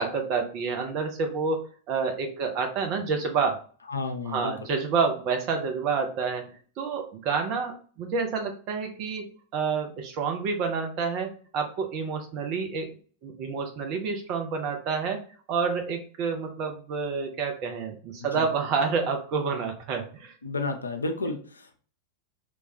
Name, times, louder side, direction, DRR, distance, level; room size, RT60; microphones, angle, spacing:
voice 1, 0.0-3.6 4.3-12.9 13.2-15.2 15.5-20.3, right 5 dB, 40° right, 4 dB, 0.5 m, -29 dB
voice 2, 3.9-4.5 18.4-18.5 20.4-21.8, left 3 dB, 75° left, 5 dB, 0.4 m, -31 dB
3.0 x 2.2 x 2.7 m, 0.43 s
figure-of-eight pair, 90°, 0 cm